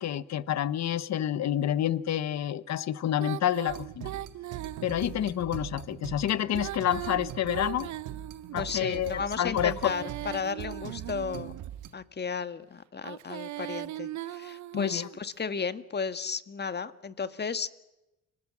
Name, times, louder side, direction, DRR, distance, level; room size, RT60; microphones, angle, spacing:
voice 1, 0.0-4.1 4.8-7.9 8.5-9.9 14.7-15.1, left 11 dB, 60° left, 1.1 m, -29 dB
Female singing, 3.2-5.3 6.4-8.8 9.5-11.7 13.0-15.2, right 13 dB, 70° right, 0.9 m, -39 dB
sound 1, 3.7-11.9, right 11 dB, 85° right, 1.8 m, -42 dB
voice 2, 8.6-11.5 11.9-17.7, left 5 dB, 35° left, 1.6 m, -34 dB
30.0 x 25.0 x 7.4 m
cardioid pair, 90°, 30 cm